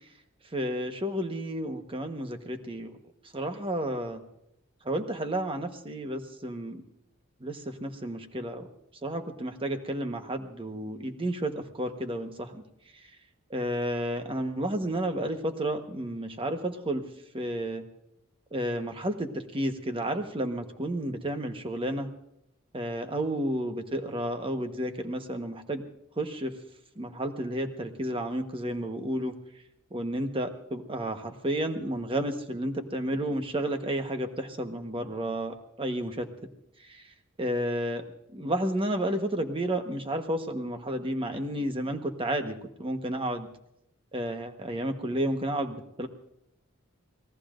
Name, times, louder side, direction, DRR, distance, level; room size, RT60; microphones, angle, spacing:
voice 1, 0.5-2.9 3.3-4.2 4.8-6.8 7.4-8.7 9.0-12.6 13.5-17.0 17.3-17.8 18.5-22.1 22.7-25.8 26.2-26.5 27.0-29.3 29.9-36.3 36.9-37.0 37.4-38.0 38.3-43.5 44.1-46.1, right 1 dB, 25° right, 6 dB, 1.2 m, -31 dB
27.0 x 18.5 x 2.6 m, 0.80 s
head